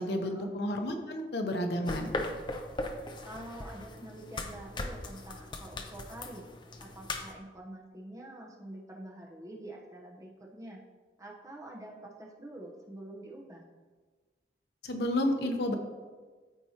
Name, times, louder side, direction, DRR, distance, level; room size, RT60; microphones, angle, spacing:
voice 1, 0.0-2.1 14.8-15.7, left 1 dB, 70° left, 4 dB, 0.8 m, -31 dB
sound 1, 1.9-7.3, left 2 dB, 25° left, 0.5 m, -39 dB
voice 2, 3.2-6.4 6.8-10.8 11.2-13.6, right 1 dB, 20° right, -1 dB, 0.9 m, -46 dB
13.0 x 4.5 x 2.9 m, 1.4 s
head